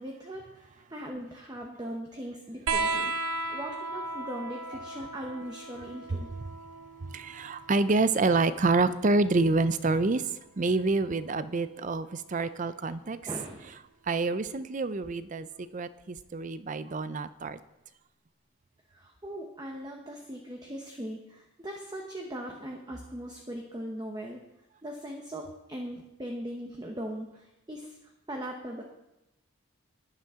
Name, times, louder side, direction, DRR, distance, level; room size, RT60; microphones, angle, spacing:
voice 1, 0.0-3.1 3.5-6.3 13.3-13.8 18.9-24.4 24.8-28.0 28.3-28.8, equal, 20° right, 1 dB, 0.9 m, -39 dB
sound 1, 2.7-9.7 11.1-11.9 13.2-13.3, right 3 dB, 80° right, 1.0 m, -36 dB
voice 2, 7.1-13.2 14.1-17.6, right 3 dB, 35° right, 14 dB, 0.5 m, -27 dB
14.0 x 10.5 x 3.7 m, 0.94 s
head